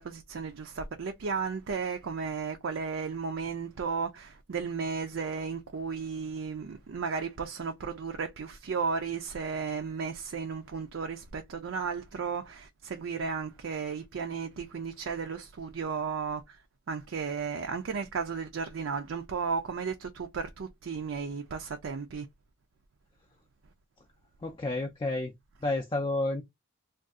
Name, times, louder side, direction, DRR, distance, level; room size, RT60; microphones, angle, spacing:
voice 1, 0.0-16.6 16.9-22.3, right 5 dB, 80° right, 0.4 m, -34 dB
voice 2, 24.4-25.3 25.6-26.4, left 2 dB, 25° left, 0.3 m, -30 dB
2.6 x 2.3 x 3.5 m
head